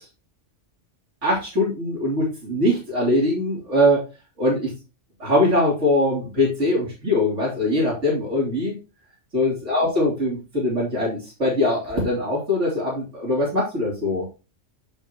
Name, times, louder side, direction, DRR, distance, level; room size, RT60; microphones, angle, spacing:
voice 1, 1.2-4.0 4.4-4.7 5.2-8.7 9.3-14.3, left 1 dB, 80° right, -6 dB, 4.0 m, -22 dB
8.4 x 7.3 x 3.0 m, 0.31 s
omnidirectional pair, 1.2 m